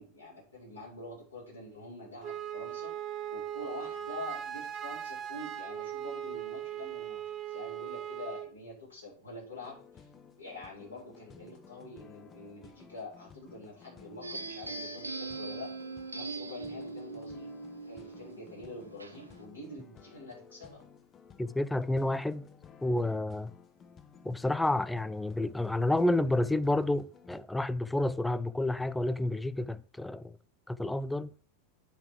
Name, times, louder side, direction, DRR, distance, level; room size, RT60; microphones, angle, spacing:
voice 1, 0.0-2.9 3.3-7.2 7.5-10.1 10.4-15.7 16.1-17.5 17.9-20.8, left 2 dB, 80° left, 5.0 m, -46 dB
Wind instrument woodwind instrument, 2.2-8.5, right 10 dB, 30° right, 0.9 m, -39 dB
sound 1, 9.6-27.4, left 6 dB, 25° left, 0.7 m, -56 dB
sound 2, 14.2-19.4, right 3 dB, 80° right, 0.7 m, -41 dB
voice 2, 21.4-22.5 22.8-23.5 24.2-30.3 30.7-31.3, left 1 dB, 5° left, 0.4 m, -30 dB
9.0 x 4.9 x 4.7 m
figure-of-eight pair, 90°, 0 cm